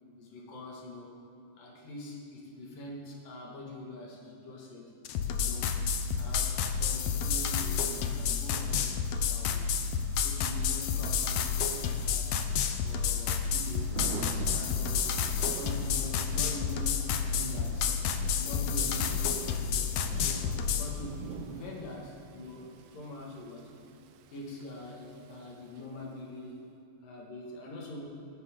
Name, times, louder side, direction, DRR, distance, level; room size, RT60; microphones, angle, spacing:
voice 1, 0.2-1.2 1.6-4.9 5.4-5.8 6.1-9.0 9.3-9.9 10.2-12.3 12.8-15.1 15.5-17.0 17.3-17.9 18.3-20.5 20.8-23.7 24.3-26.6 27.0-28.1, left 2 dB, 85° left, -2 dB, 3.9 m, -43 dB
sound 1, 5.0-20.9, left 6 dB, 70° left, 1.8 m, -30 dB
Thunder / Rain, 9.6-26.2, right 8 dB, 75° right, 2.0 m, -47 dB
19.0 x 14.0 x 3.9 m, 2.7 s
omnidirectional pair, 3.8 m